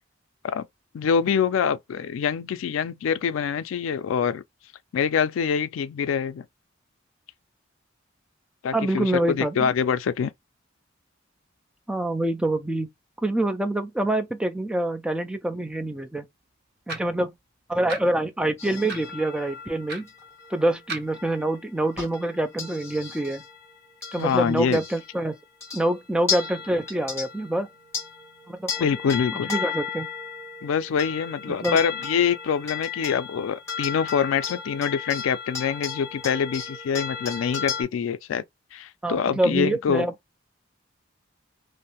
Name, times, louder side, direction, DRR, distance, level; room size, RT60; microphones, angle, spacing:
voice 1, 0.9-4.4 4.9-6.5 8.6-10.3 24.2-24.8 28.8-29.5 30.6-38.4 38.7-40.0, left 7 dB, 80° left, 0.3 m, -25 dB
voice 2, 8.7-9.7 11.9-12.9 13.2-16.2 16.9-17.3 17.7-20.1 20.5-23.4 24.1-25.4 25.7-27.7 28.5-28.9 29.3-30.1 31.5-31.8 39.0-40.1, right 1 dB, 5° right, 0.3 m, -26 dB
sound 1, 16.9-17.2 17.9-18.0 18.9-19.1 19.9-20.0 20.9-21.1, right 2 dB, 50° right, 0.7 m, -34 dB
sound 2, 18.6-25.2 25.6-25.9 26.3-37.8, left 6 dB, 15° left, 1.0 m, -35 dB
2.6 x 2.0 x 2.8 m
head